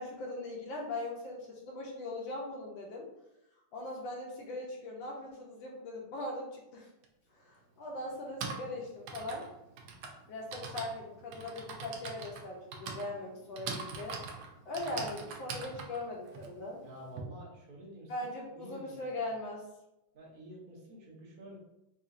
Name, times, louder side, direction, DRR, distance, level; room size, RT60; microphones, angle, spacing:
voice 1, 0.0-3.1 3.7-6.9 7.3-9.5 10.3-14.2 14.6-16.8 18.1-19.6, left 2 dB, 70° left, -2 dB, 1.3 m, -40 dB
Typing, 7.0-7.1 8.1-17.2, right 5 dB, 80° right, 1.4 m, -43 dB
voice 2, 16.8-19.0 20.1-21.6, right 1 dB, 50° right, -4 dB, 0.5 m, -50 dB
4.3 x 2.7 x 2.4 m, 0.90 s
omnidirectional pair, 2.4 m